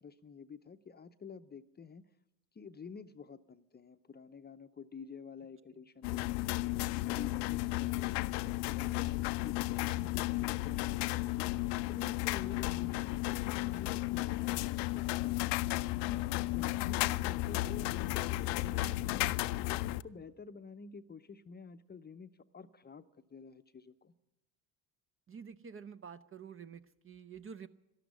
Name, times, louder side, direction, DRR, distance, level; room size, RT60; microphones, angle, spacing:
voice 1, 0.0-2.1 2.5-6.7 7.1-11.5 11.9-15.5 15.9-19.3 19.7-24.1, left 5 dB, 25° left, 10 dB, 0.7 m, -50 dB
sound 1, 6.0-20.0, left 19 dB, 75° left, 0.5 m, -34 dB
voice 2, 25.3-27.7, right 6 dB, 30° right, 13 dB, 0.6 m, -48 dB
12.0 x 12.0 x 9.4 m, 0.94 s
supercardioid pair, 70°, 41 cm